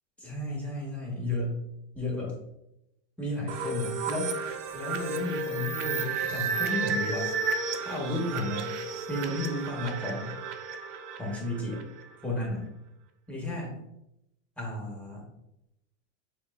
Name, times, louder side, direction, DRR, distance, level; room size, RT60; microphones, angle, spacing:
voice 1, 0.2-1.6 1.9-2.3 3.2-4.3 4.7-7.3 7.8-8.7 9.1-10.3 11.2-11.8 12.2-12.6 13.3-13.7 14.6-15.2, left 1 dB, 5° left, -3 dB, 1.1 m, -33 dB
sound 1, 3.5-12.1, right 4 dB, 80° right, 0.6 m, -32 dB
6.4 x 2.2 x 2.4 m, 0.83 s
supercardioid pair, 130°, 37 cm